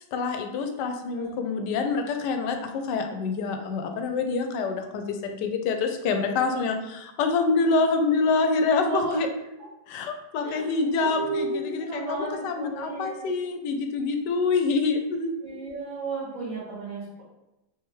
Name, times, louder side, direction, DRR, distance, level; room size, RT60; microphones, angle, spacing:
voice 1, 0.1-9.3 9.9-15.3, left 4 dB, 70° left, 5 dB, 1.1 m, -26 dB
voice 2, 8.8-9.2 10.4-13.3 15.4-17.2, right 3 dB, 70° right, -10 dB, 2.4 m, -33 dB
4.8 x 3.2 x 3.1 m, 0.95 s
omnidirectional pair, 2.1 m